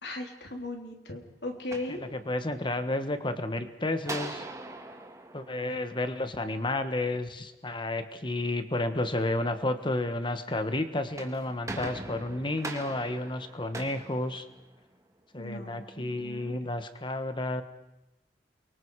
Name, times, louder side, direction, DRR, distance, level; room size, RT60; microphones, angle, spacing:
voice 1, 0.0-2.0 15.4-16.6, left 2 dB, 70° left, 3 dB, 3.4 m, -38 dB
sound 1, 1.5-2.7 4.0-6.5 10.9-15.0, right 2 dB, 20° right, 2.0 m, -42 dB
voice 2, 2.0-4.4 5.3-14.4 15.3-17.6, left 2 dB, 30° left, 9 dB, 1.5 m, -31 dB
29.0 x 24.0 x 4.9 m, 0.96 s
head